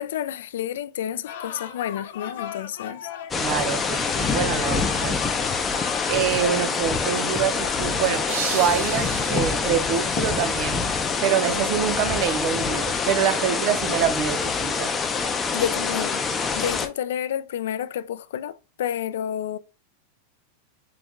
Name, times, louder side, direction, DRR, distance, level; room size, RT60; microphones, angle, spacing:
voice 1, 0.0-3.1 15.5-16.2 16.5-19.6, left 10 dB, 85° left, 0.3 m, -30 dB
sound 1, 1.3-11.9, left 9 dB, 65° left, 0.7 m, -39 dB
sound 2, 3.3-16.9, left 5 dB, 15° left, 0.4 m, -25 dB
voice 2, 3.3-5.2 6.1-10.9 11.2-14.9, right 9 dB, 40° right, 0.5 m, -26 dB
sound 3, 8.3-11.1, right 7 dB, 90° right, 0.8 m, -35 dB
4.0 x 2.3 x 3.5 m
supercardioid pair, 170°, 0 cm